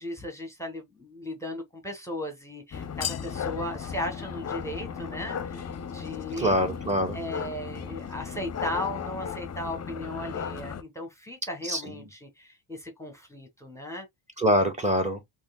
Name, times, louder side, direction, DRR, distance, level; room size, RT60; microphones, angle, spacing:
voice 1, 0.0-6.6 7.1-14.1, left 1 dB, 5° left, 1.2 m, -36 dB
choper over neighborhood, 2.7-10.8, left 7 dB, 35° left, 0.6 m, -35 dB
voice 2, 6.4-7.2 11.6-12.1 14.4-15.2, equal, 15° right, 1.5 m, -25 dB
3.6 x 2.8 x 2.3 m
cardioid pair, 85°, 47 cm